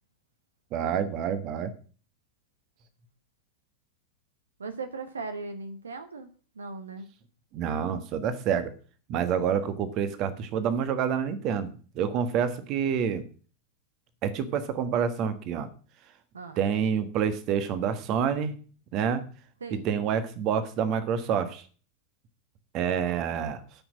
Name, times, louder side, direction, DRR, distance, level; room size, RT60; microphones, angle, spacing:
voice 1, 0.7-1.7 7.5-8.7 9.1-13.2 14.2-15.7 16.6-18.5 18.9-19.2 19.8-21.6 22.7-23.6, right 7 dB, 40° right, 12 dB, 1.5 m, -28 dB
voice 2, 4.6-6.3 6.5-7.1 16.3-16.6 19.6-19.9, right 3 dB, 70° right, 10 dB, 1.1 m, -38 dB
13.0 x 6.3 x 6.2 m, 0.39 s
figure-of-eight pair, 90°, 0 cm